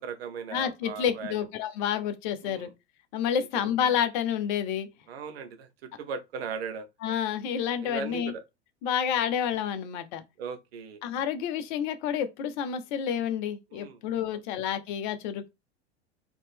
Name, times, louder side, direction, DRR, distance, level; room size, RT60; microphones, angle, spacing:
voice 1, 0.0-1.5 2.4-2.7 3.5-3.7 5.1-6.9 7.8-8.4 10.4-11.0 13.7-14.0, right 5 dB, 60° right, 1.0 m, -38 dB
voice 2, 0.5-2.7 3.1-4.9 7.0-8.3 8.8-10.2 11.0-15.5, left 9 dB, 45° left, 0.8 m, -29 dB
4.1 x 2.9 x 3.4 m
figure-of-eight pair, 90°, 34 cm